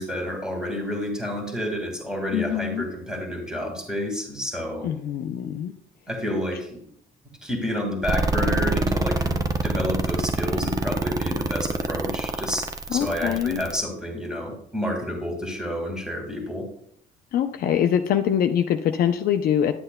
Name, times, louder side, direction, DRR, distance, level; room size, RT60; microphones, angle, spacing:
voice 1, 0.0-4.9 6.1-6.8 7.4-16.7, left 1 dB, 5° right, 2 dB, 1.9 m, -30 dB
voice 2, 2.3-2.8 4.8-5.7 12.9-13.6 17.3-19.7, left 9 dB, 60° left, 6 dB, 0.5 m, -23 dB
sound 1, 8.0-13.8, right 3 dB, 20° right, 0.6 m, -25 dB
10.5 x 7.8 x 2.2 m, 0.66 s
cardioid pair, 110°, 17 cm